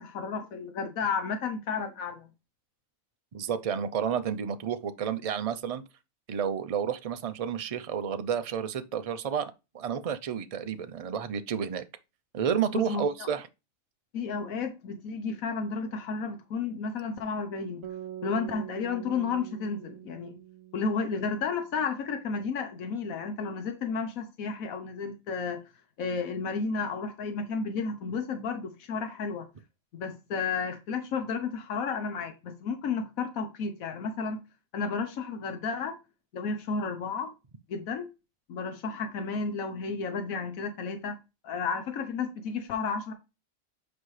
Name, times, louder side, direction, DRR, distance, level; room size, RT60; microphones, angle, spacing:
voice 1, 0.0-2.3 12.7-13.3 14.1-17.8 18.2-20.3 20.7-25.6 26.0-29.5 29.9-34.4 34.7-36.0 36.3-37.3 37.7-38.1 38.5-41.2 41.4-43.1, left 5 dB, 90° left, 1.3 m, -32 dB
voice 2, 3.3-5.8 6.3-11.8 12.3-13.5, right 7 dB, 50° right, 0.4 m, -31 dB
sound 1, 17.8-22.1, right 11 dB, 80° right, 1.0 m, -44 dB
8.2 x 5.1 x 3.2 m
omnidirectional pair, 1.4 m